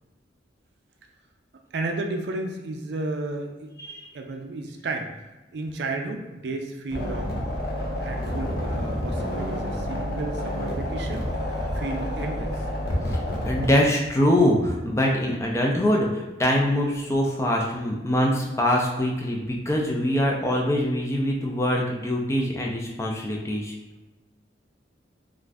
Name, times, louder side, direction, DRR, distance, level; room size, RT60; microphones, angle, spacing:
voice 1, 1.7-3.7 4.1-5.1 5.5-7.5 7.9-11.3 11.7-12.7, right 2 dB, 65° right, 4 dB, 0.4 m, -32 dB
sound 1, 6.9-13.7, equal, 55° left, 0.6 m, -29 dB
voice 2, 12.9-23.7, left 1 dB, 15° left, -1 dB, 0.4 m, -24 dB
2.5 x 2.4 x 3.2 m, 1.1 s
head